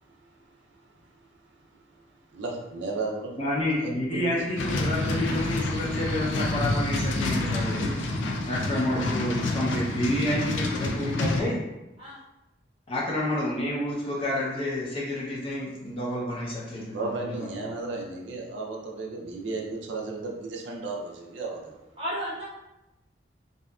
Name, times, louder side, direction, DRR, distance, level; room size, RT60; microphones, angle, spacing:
voice 1, 2.3-3.3 3.8-4.4 16.9-21.7, right 3 dB, 80° right, -1 dB, 0.4 m, -34 dB
voice 2, 3.4-8.0 8.4-11.6 12.9-17.4, left 1 dB, 30° left, -5 dB, 0.5 m, -29 dB
sound 1, 4.6-11.4, left 2 dB, 85° left, 0.4 m, -28 dB
voice 3, 8.7-9.0 12.0-12.2 22.0-22.5, equal, 30° right, -7 dB, 0.8 m, -34 dB
2.7 x 2.4 x 2.2 m, 0.97 s
head